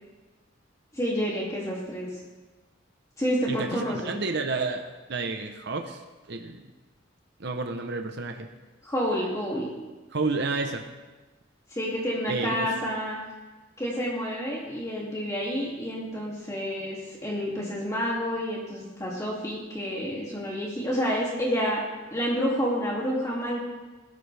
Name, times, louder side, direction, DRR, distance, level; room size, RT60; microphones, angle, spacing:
voice 1, 0.9-2.2 3.2-4.1 8.8-9.7 11.7-13.2 13.8-21.8 22.1-23.6, equal, 15° left, -5 dB, 2.6 m, -29 dB
voice 2, 3.5-6.0 6.3-6.6 7.4-8.5 10.1-10.9 12.3-12.7, right 3 dB, 60° right, 5 dB, 0.9 m, -30 dB
21.0 x 12.5 x 3.5 m, 1.2 s
head